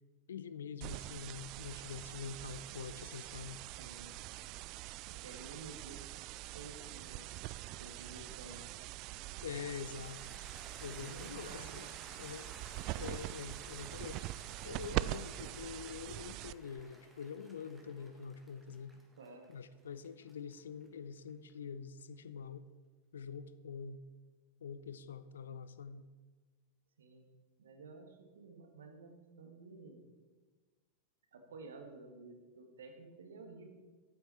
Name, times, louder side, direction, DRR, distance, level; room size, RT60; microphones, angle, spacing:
voice 1, 0.3-3.6 9.4-10.2 10.8-11.9 12.2-12.5 12.9-14.3 14.6-19.0 19.5-22.6 23.1-24.0 24.6-26.0, left 6 dB, 65° left, 14 dB, 0.5 m, -45 dB
sound 1, 0.8-16.8, right 17 dB, 40° right, 0.3 m, -43 dB
voice 2, 3.7-4.2 5.1-6.0 6.4-7.3 7.8-8.7 10.8-11.9 19.2-19.5 27.0-27.3 27.6-30.0 31.3-33.7, right 3 dB, 65° right, 4 dB, 1.8 m, -52 dB
Cheering / Applause, 9.3-21.5, right 1 dB, 5° right, 1.9 m, -57 dB
14.0 x 8.7 x 4.3 m, 1.4 s
figure-of-eight pair, 90°, 0 cm